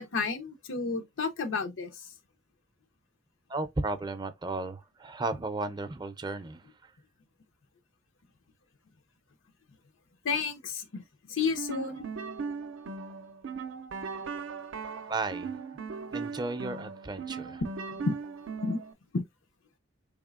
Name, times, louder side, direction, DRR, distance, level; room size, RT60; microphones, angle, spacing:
voice 1, 0.0-1.9 10.2-11.0 11.3-12.1 17.9-18.2 18.6-18.8 19.1-19.2, left 4 dB, 90° left, 0.7 m, -31 dB
voice 2, 3.5-6.6 15.1-15.6 16.1-17.6, right 2 dB, 20° right, 0.4 m, -34 dB
sound 1, 11.5-18.9, right 5 dB, 80° right, 0.5 m, -38 dB
3.9 x 3.5 x 2.4 m
head